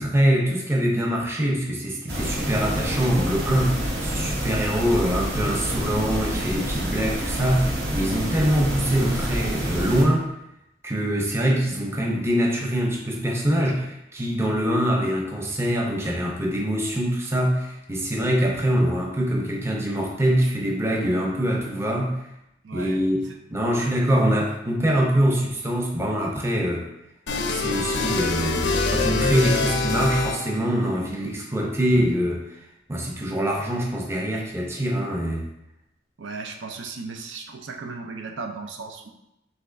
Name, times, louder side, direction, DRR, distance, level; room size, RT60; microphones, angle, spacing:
voice 1, 0.0-10.3 10.8-22.2 22.7-26.9 27.5-32.6 32.9-35.5, equal, 15° right, -1 dB, 0.5 m, -24 dB
sound 1, 2.1-10.0, equal, 55° right, 1.0 m, -27 dB
voice 2, 22.6-23.0 23.8-23.9 36.2-39.1, right 4 dB, 75° right, 3 dB, 0.5 m, -36 dB
sound 2, 27.3-30.7, left 3 dB, 65° left, 0.5 m, -25 dB
5.7 x 3.0 x 2.6 m, 0.85 s
head